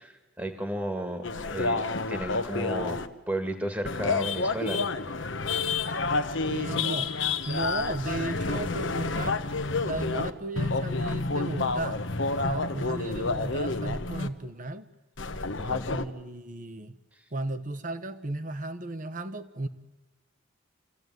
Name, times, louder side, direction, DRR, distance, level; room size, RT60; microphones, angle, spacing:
voice 1, 0.0-3.0 3.3-4.9 15.6-15.9 17.1-17.2, right 1 dB, 10° right, 7 dB, 1.8 m, -34 dB
sound 1, 1.2-3.1 3.8-10.3 10.6-14.3 15.2-16.0, left 3 dB, 65° left, 1.1 m, -29 dB
voice 2, 6.4-7.1 7.4-9.4 9.8-12.0 12.4-14.9 15.9-16.9 17.3-19.7, right 2 dB, 40° right, 11 dB, 1.2 m, -35 dB
26.5 x 15.5 x 9.4 m, 1.1 s
head